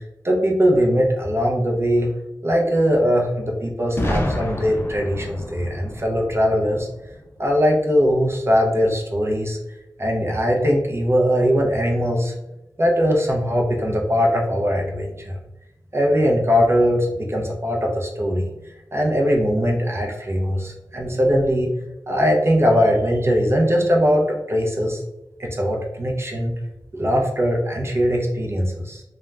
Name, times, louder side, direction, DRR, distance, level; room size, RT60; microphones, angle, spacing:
voice 1, 0.0-2.1 2.4-6.9 7.4-9.6 10.0-12.3 12.8-15.3 15.9-18.5 18.9-21.7 22.1-25.0 25.4-26.5 27.0-29.0, equal, 35° right, -1 dB, 0.5 m, -20 dB
Boom, 4.0-7.8, left 1 dB, 30° left, 0.5 m, -29 dB
2.3 x 2.1 x 3.2 m, 0.96 s
cardioid pair, 55°, 7 cm